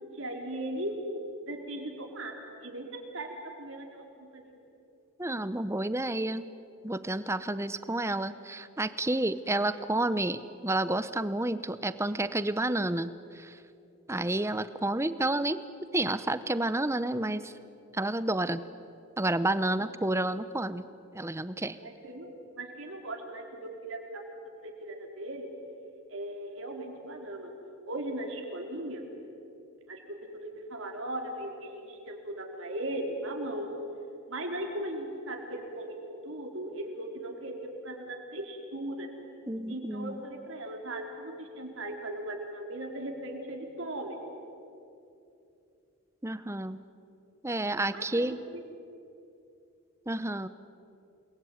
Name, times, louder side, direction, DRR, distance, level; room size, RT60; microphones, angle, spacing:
voice 1, 0.1-1.0 1.4-2.3 2.6-4.5 19.8-19.9 21.8-24.0 24.6-25.5 26.1-27.5 27.9-29.0 29.9-33.7 34.3-36.0 36.2-39.1 39.7-44.2 47.9-48.6, right 1 dB, 60° right, 1 dB, 4.4 m, -38 dB
voice 2, 5.2-6.5 6.8-13.6 14.1-15.6 15.9-17.5 17.9-18.6 19.2-20.8 21.1-21.8 39.5-40.2 46.2-46.8 47.4-48.4 50.1-50.5, right 1 dB, 10° right, 13 dB, 0.7 m, -30 dB
29.0 x 21.5 x 9.5 m, 2.7 s
head